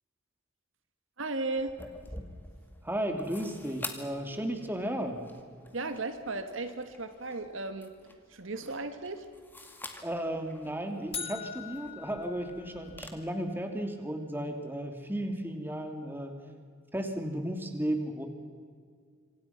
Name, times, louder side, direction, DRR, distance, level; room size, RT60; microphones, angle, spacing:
voice 1, 1.2-1.8 5.7-7.9 8.3-9.3, right 3 dB, 70° right, 8 dB, 1.7 m, -35 dB
sound 1, 1.6-13.1, left 2 dB, 10° left, 2.2 m, -48 dB
voice 2, 2.8-5.3 10.0-16.3 16.9-18.3, right 1 dB, 10° right, 4 dB, 2.7 m, -34 dB
sound 2, 11.1-13.3, left 6 dB, 30° left, 1.4 m, -42 dB
26.5 x 26.0 x 5.9 m, 2.1 s
head